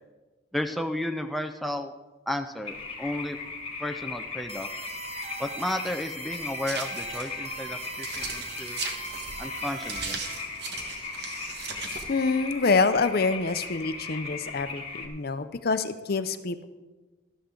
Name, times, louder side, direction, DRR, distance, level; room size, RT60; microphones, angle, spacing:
voice 1, 0.5-1.9 2.3-3.4 3.8-4.7 5.4-8.8 9.4-10.2, left 1 dB, ahead, 4 dB, 0.4 m, -33 dB
sound 1, 2.7-15.1, left 4 dB, 30° left, 1.4 m, -38 dB
sound 2, 4.5-10.4, right 4 dB, 35° right, 1.1 m, -41 dB
sound 3, 6.7-12.2, right 4 dB, 60° right, 1.4 m, -38 dB
voice 2, 12.1-16.6, left 4 dB, 50° left, 11 dB, 0.6 m, -26 dB
12.5 x 12.5 x 3.8 m, 1.2 s
head